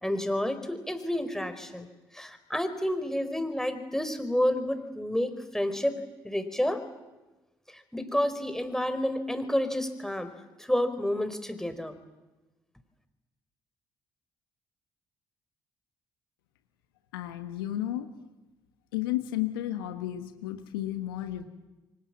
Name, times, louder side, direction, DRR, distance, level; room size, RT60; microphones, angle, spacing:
voice 1, 0.0-1.9 2.1-6.0 6.2-6.8 7.7-10.3 10.6-12.0, left 1 dB, 5° left, 9 dB, 4.1 m, -29 dB
voice 2, 17.1-18.1 18.9-21.4, left 13 dB, 85° left, 8 dB, 1.4 m, -32 dB
27.0 x 24.5 x 7.4 m, 1.1 s
hypercardioid pair, 50°, 12 cm